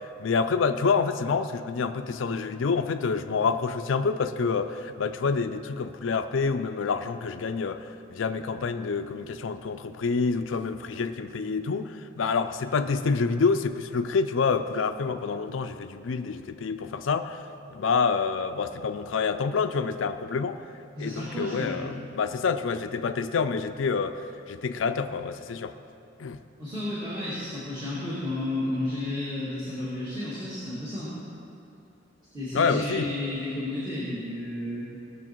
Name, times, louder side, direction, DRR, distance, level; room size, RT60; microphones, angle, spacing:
voice 1, 0.2-17.4 17.7-20.6 21.0-24.2 24.5-25.7 26.2-26.4 32.5-33.1, left 5 dB, 80° left, 8 dB, 0.4 m, -27 dB
voice 2, 20.9-21.8 26.6-31.2 32.3-34.9, left 1 dB, 25° right, -10 dB, 2.4 m, -32 dB
17.5 x 6.6 x 4.5 m, 2.7 s
head